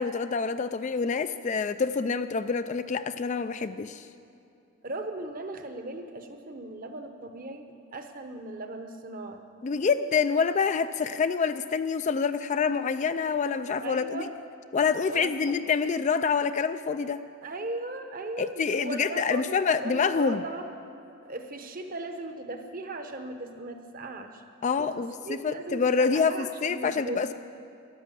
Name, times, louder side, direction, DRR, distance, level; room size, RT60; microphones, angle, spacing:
voice 1, 0.0-4.1 9.6-14.2 14.7-17.2 18.4-20.4 24.6-27.3, left 5 dB, 35° left, 11 dB, 0.3 m, -27 dB
voice 2, 4.8-9.4 13.8-14.3 15.1-15.6 17.4-20.6 21.2-24.4 24.8-27.2, right 2 dB, 40° right, 6 dB, 0.9 m, -38 dB
13.5 x 9.9 x 7.6 m, 2.6 s
head